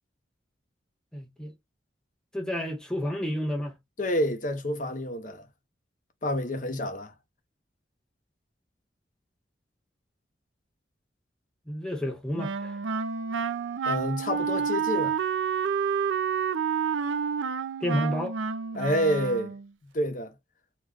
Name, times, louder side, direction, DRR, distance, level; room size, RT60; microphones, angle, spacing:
voice 1, 1.1-1.5 2.3-3.8 11.7-12.8 17.8-18.4, equal, 5° left, 0.5 m, -30 dB
voice 2, 4.0-5.4 6.2-7.1 13.8-15.2 18.7-19.6 19.9-20.3, equal, 45° left, 0.8 m, -28 dB
Wind instrument woodwind instrument, 12.4-19.7, right 6 dB, 85° right, 0.4 m, -29 dB
2.8 x 2.2 x 3.6 m
head